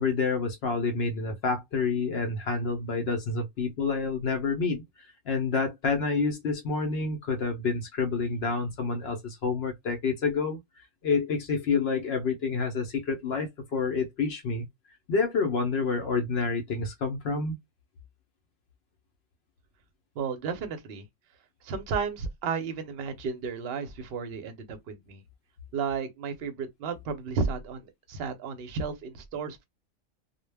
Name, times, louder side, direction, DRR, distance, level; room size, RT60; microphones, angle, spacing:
voice 1, 0.0-14.7 15.1-17.6, left 4 dB, 60° left, 0.7 m, -28 dB
voice 2, 20.2-21.1 21.6-25.2 25.7-29.6, right 5 dB, 55° right, 0.7 m, -33 dB
2.2 x 2.1 x 3.2 m
omnidirectional pair, 1.4 m